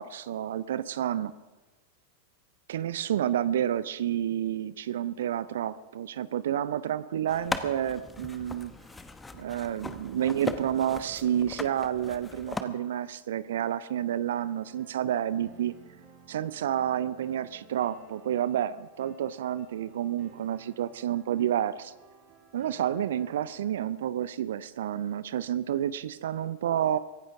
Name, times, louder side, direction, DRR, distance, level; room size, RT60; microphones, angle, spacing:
voice 1, 0.0-1.3 2.7-8.7 9.3-15.7 16.3-21.9 22.5-27.0, right 10 dB, 60° right, 16 dB, 0.6 m, -30 dB
sound 1, 7.3-12.6, left 3 dB, 10° left, 1.1 m, -38 dB
sound 2, 14.3-23.7, right 4 dB, 40° right, 4.8 m, -56 dB
24.5 x 16.0 x 3.6 m, 1.2 s
figure-of-eight pair, 90°, 0 cm